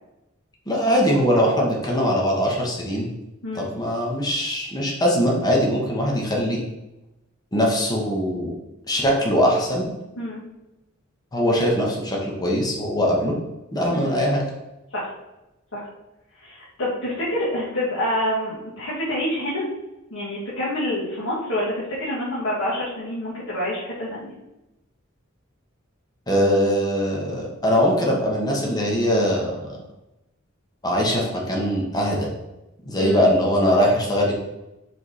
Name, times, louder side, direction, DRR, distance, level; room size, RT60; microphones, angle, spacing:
voice 1, 0.7-3.1 3.5-6.6 7.5-8.5 8.9-9.9 11.3-13.4 13.7-14.4 26.3-29.7 30.8-32.3 32.9-34.3, equal, 20° left, -2 dB, 1.2 m, -21 dB
voice 2, 16.4-19.6 20.1-24.3 33.0-33.3, left 1 dB, 70° left, -9 dB, 2.0 m, -27 dB
5.2 x 4.7 x 4.1 m, 0.96 s
head